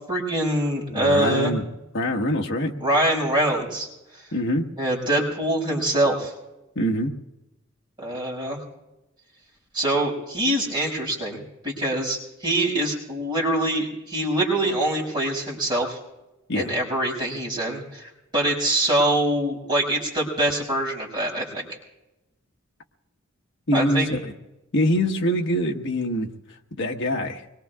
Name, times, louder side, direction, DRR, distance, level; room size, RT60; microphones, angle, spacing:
voice 1, 0.1-1.5 2.8-3.9 4.1-4.2 4.8-6.3 8.0-8.6 9.7-16.0 16.5-21.7 23.7-24.1, right 1 dB, 25° right, -4 dB, 6.0 m, -24 dB
voice 2, 0.9-1.6 1.9-2.8 4.3-4.7 6.7-7.1 16.5-16.7 23.7-24.3 24.7-26.3 26.8-27.4, equal, 60° left, 3 dB, 1.3 m, -24 dB
25.5 x 22.0 x 2.4 m, 0.95 s
head